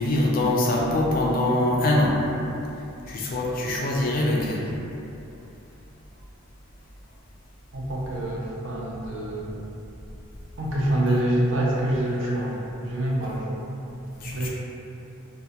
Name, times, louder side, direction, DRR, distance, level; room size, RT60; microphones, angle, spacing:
voice 1, 0.0-2.2 3.1-4.7 12.1-12.4 14.2-14.5, left 1 dB, 40° left, -3 dB, 0.3 m, -23 dB
voice 2, 7.7-9.6 10.6-13.7 14.2-14.5, right 1 dB, 60° right, -4 dB, 0.4 m, -26 dB
2.3 x 2.1 x 2.7 m, 2.8 s
head